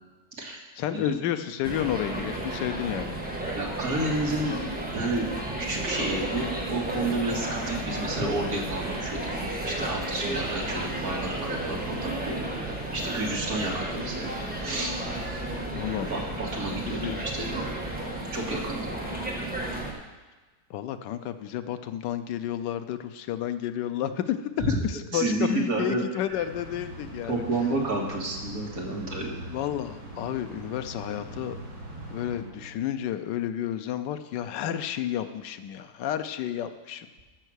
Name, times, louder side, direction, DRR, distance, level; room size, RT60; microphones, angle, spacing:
voice 1, 0.8-3.2 15.7-16.2 16.7-17.2 20.7-24.4 24.8-27.4 29.5-31.6 32.1-37.1, left 11 dB, 90° left, 9 dB, 1.3 m, -31 dB
sound 1, 1.6-19.9, right 1 dB, 5° right, 1.3 m, -33 dB
voice 2, 3.5-4.6 4.9-9.2 9.7-12.4 12.9-14.3 14.6-14.9 16.1-17.5 18.3-18.9 24.6-24.8 25.1-26.0 27.3-29.4, right 2 dB, 55° right, -2 dB, 2.4 m, -30 dB
sound 2, 5.3-18.0, right 2 dB, 40° right, 0.6 m, -45 dB
sound 3, 26.3-33.1, right 1 dB, 85° right, 4.5 m, -42 dB
13.5 x 5.7 x 6.3 m, 1.3 s
omnidirectional pair, 1.9 m